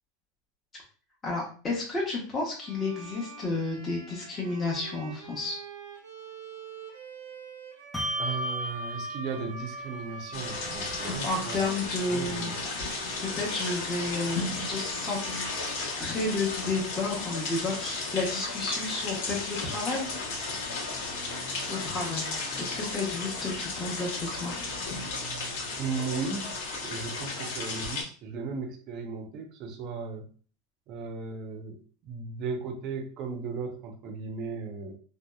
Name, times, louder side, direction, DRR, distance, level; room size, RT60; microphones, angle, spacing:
voice 1, 1.2-5.6 10.8-12.6 13.2-15.2 16.0-20.1 21.7-22.3 22.6-24.5, left 3 dB, 25° left, -4 dB, 0.7 m, -31 dB
Bowed string instrument, 2.6-16.6, right 5 dB, 85° right, 0.6 m, -46 dB
Bell, 7.9-14.8, equal, 5° left, 0.3 m, -38 dB
voice 2, 8.2-11.6 12.1-12.6 25.8-30.3 30.9-35.0, right 4 dB, 50° right, 4 dB, 0.6 m, -36 dB
sound 1, 10.3-28.0, left 3 dB, 70° left, 0.8 m, -34 dB
2.7 x 2.0 x 2.2 m, 0.41 s
supercardioid pair, 125°, 0 cm